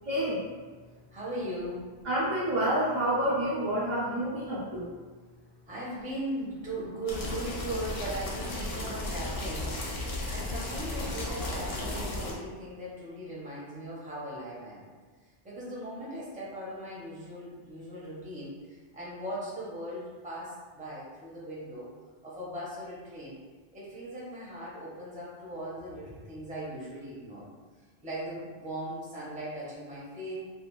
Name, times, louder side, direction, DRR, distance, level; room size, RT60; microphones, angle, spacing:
voice 1, 0.0-0.4 2.0-4.9, right 1 dB, 50° right, -9 dB, 0.7 m, -28 dB
voice 2, 1.1-1.9 5.7-14.8 15.2-21.9 22.2-23.4 23.7-27.4 28.0-30.4, right 1 dB, 10° right, -7 dB, 0.6 m, -39 dB
sound 1, 7.1-12.3, left 1 dB, 65° left, 0.8 m, -34 dB
2.5 x 2.4 x 3.0 m, 1.4 s
omnidirectional pair, 1.1 m